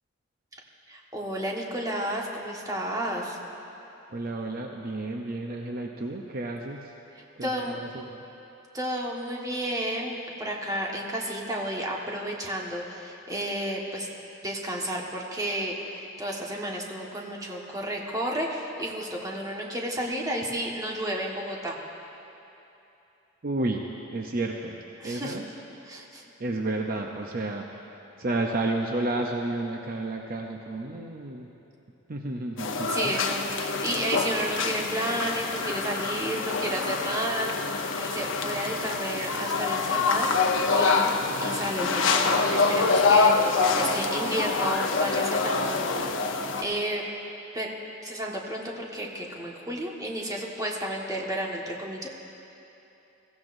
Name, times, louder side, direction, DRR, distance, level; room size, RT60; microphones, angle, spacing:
voice 1, 0.9-3.4 7.4-7.8 8.7-14.1 14.4-21.8 25.0-25.4 25.9-26.2 32.9-45.8 46.6-47.0 47.5-47.7 48.0-52.1, right 1 dB, 20° right, -2 dB, 1.5 m, -32 dB
voice 2, 4.1-6.9 7.4-8.2 23.4-23.8 24.1-24.8 25.0-25.5 26.4-27.9 28.2-31.5 32.1-33.2, right 2 dB, 50° right, 2 dB, 0.7 m, -31 dB
sound 1, 32.6-46.6, left 4 dB, 75° left, 0.8 m, -26 dB
22.0 x 15.5 x 2.6 m, 2.9 s
head